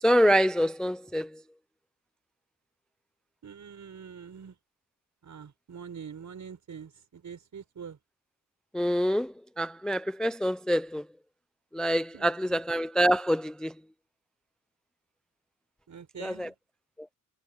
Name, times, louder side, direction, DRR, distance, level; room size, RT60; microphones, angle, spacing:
voice 1, 0.0-1.4 8.7-11.0 11.7-13.7 16.2-16.5, equal, ahead, 0.4 m, -26 dB
voice 2, 3.4-4.5 5.2-8.0 12.1-12.6 15.9-16.5, right 7 dB, 55° right, 6.4 m, -45 dB
wide cardioid pair, 160°, 35 cm